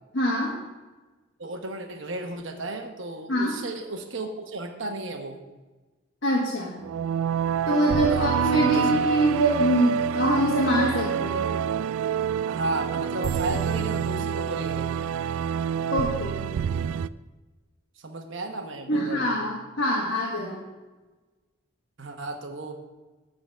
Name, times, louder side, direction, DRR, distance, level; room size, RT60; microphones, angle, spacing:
voice 1, 0.1-0.6 3.3-3.5 6.2-6.8 7.7-11.6 13.5-13.6 15.9-16.5 18.9-20.6, equal, 60° left, -3 dB, 1.5 m, -24 dB
voice 2, 1.4-5.4 8.1-8.3 8.6-8.9 12.5-15.0 18.0-19.4 22.0-22.7, right 2 dB, 65° right, 4 dB, 1.2 m, -34 dB
sound 1, 6.8-17.1, right 7 dB, 80° right, 0.3 m, -27 dB
12.0 x 4.0 x 7.6 m, 1.2 s
head